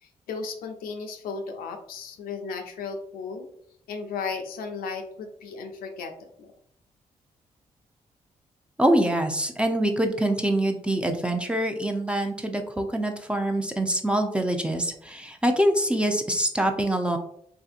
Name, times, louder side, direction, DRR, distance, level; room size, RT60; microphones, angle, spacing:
voice 1, 0.0-3.5 3.9-6.5, left 5 dB, 75° left, 4 dB, 0.5 m, -35 dB
voice 2, 8.8-17.2, right 1 dB, 5° right, 4 dB, 0.6 m, -25 dB
3.4 x 2.6 x 2.4 m, 0.68 s
supercardioid pair, 50°, 15 cm